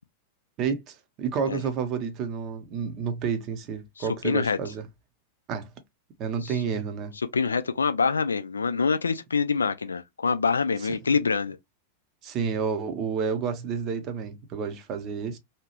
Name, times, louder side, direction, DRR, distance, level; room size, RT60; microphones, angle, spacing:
voice 1, 0.6-4.8 5.5-5.7 6.2-7.1 12.2-15.4, right 6 dB, 35° right, 0.7 m, -30 dB
voice 2, 4.0-4.6 6.4-6.5 7.3-11.6, left 5 dB, 75° left, 0.3 m, -25 dB
2.8 x 2.3 x 2.9 m
figure-of-eight pair, 90°, 0 cm